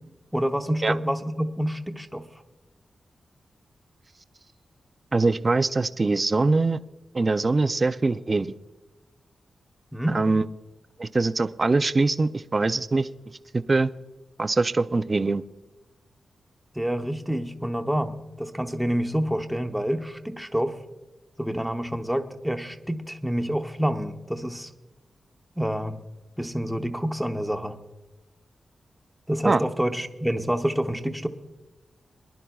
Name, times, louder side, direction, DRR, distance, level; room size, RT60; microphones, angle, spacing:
voice 1, 0.3-2.2 9.9-10.2 16.7-20.8 21.4-24.7 25.6-25.9 26.4-27.8 29.3-31.3, equal, ahead, 5 dB, 0.8 m, -27 dB
voice 2, 5.1-6.8 7.1-8.5 10.1-10.4 11.0-13.1 13.5-13.9 14.4-15.4 29.4-29.6, right 3 dB, 30° right, 11 dB, 0.4 m, -23 dB
23.5 x 11.5 x 2.3 m, 1.1 s
wide cardioid pair, 155°, 0 cm